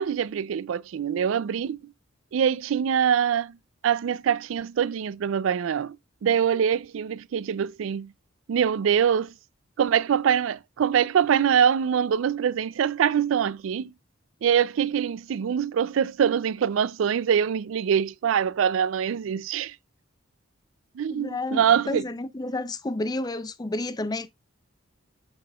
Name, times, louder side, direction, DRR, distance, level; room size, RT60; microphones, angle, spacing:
voice 1, 0.0-1.9 2.3-3.6 3.8-6.0 6.2-8.1 8.5-9.3 9.8-13.9 14.4-19.8 21.0-22.0, right 8 dB, 75° right, 0.3 m, -24 dB
voice 2, 21.1-24.3, left 2 dB, 20° left, 0.4 m, -30 dB
7.5 x 6.7 x 2.3 m
head